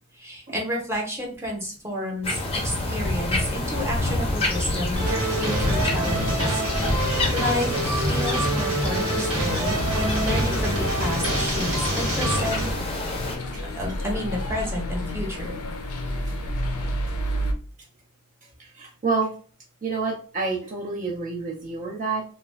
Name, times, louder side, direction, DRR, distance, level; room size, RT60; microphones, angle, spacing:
voice 1, 0.2-12.7 13.8-15.5, left 1 dB, 10° right, -2 dB, 0.8 m, -31 dB
sound 1, 2.2-13.4, left 2 dB, 25° left, 0.5 m, -28 dB
sound 2, 4.9-12.7, right 1 dB, 80° right, 1.2 m, -26 dB
sound 3, 9.7-17.5, equal, 85° left, 0.5 m, -30 dB
voice 2, 18.6-19.3 19.8-22.2, right 4 dB, 40° right, -1 dB, 0.4 m, -28 dB
2.3 x 2.2 x 3.2 m, 0.39 s
head